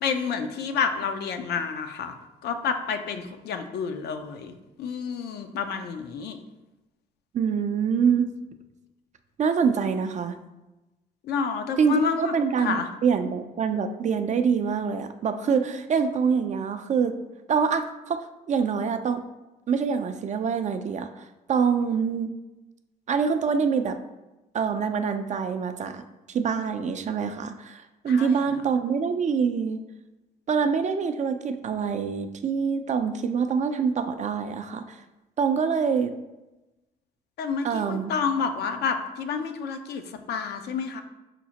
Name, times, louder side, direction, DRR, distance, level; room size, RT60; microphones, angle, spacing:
voice 1, 0.0-2.1 2.4-6.4 11.3-12.3 12.6-12.9 28.1-28.4 37.4-41.0, left 6 dB, 60° left, 7 dB, 0.4 m, -29 dB
voice 2, 7.3-8.3 9.4-10.4 11.8-17.1 17.5-19.2 19.7-22.3 23.1-24.0 24.5-29.8 30.5-35.0 35.4-36.2 37.6-38.1, right 6 dB, 40° right, 8 dB, 0.4 m, -25 dB
5.7 x 2.0 x 2.8 m, 1.0 s
hypercardioid pair, 55°, 19 cm